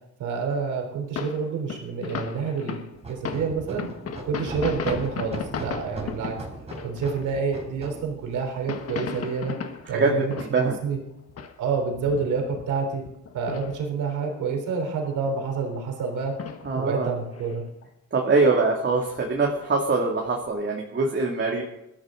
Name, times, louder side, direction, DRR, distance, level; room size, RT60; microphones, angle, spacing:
voice 1, 0.2-3.9 4.2-6.4 6.8-9.6 9.9-11.0 11.6-13.0 13.3-16.4 16.7-17.7, right 5 dB, 80° right, 3 dB, 3.8 m, -28 dB
sound 1, 1.2-7.8 8.4-11.0 11.3-14.1 14.4-14.5 14.9-15.8 16.1-16.7 17.0-17.8 18.4-18.5 18.9-19.8 20.3-20.5, left 6 dB, 50° left, 1.6 m, -36 dB
sound 2, 3.0-9.0, right 2 dB, 20° right, 4.3 m, -40 dB
voice 2, 9.9-10.2 10.5-10.7 16.6-17.1 18.1-21.6, right 3 dB, 40° right, -1 dB, 2.6 m, -23 dB
20.5 x 13.0 x 3.9 m, 0.87 s
cardioid pair, 90°, 30 cm